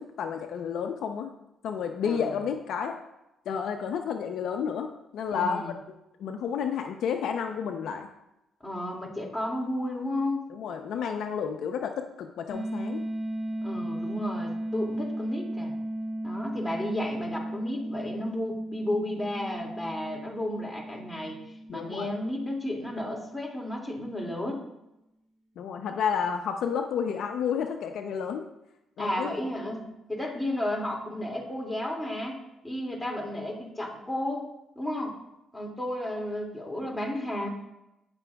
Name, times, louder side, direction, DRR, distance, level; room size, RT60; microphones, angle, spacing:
voice 1, 0.0-1.3 1.6-3.0 3.5-5.6 6.2-8.1 10.5-13.0 21.7-22.1 25.6-28.5 29.0-29.3, left 7 dB, 75° left, 5 dB, 0.7 m, -31 dB
voice 2, 5.3-5.8 8.6-10.4 13.6-15.7 16.2-21.4 21.7-24.6 29.0-32.4 32.6-34.5 34.8-35.2 35.5-37.5, left 1 dB, 10° left, -1 dB, 2.5 m, -33 dB
sound 1, 12.5-23.2, right 1 dB, 40° right, 3.2 m, -35 dB
17.5 x 6.1 x 2.4 m, 0.90 s
cardioid pair, 90°, 0 cm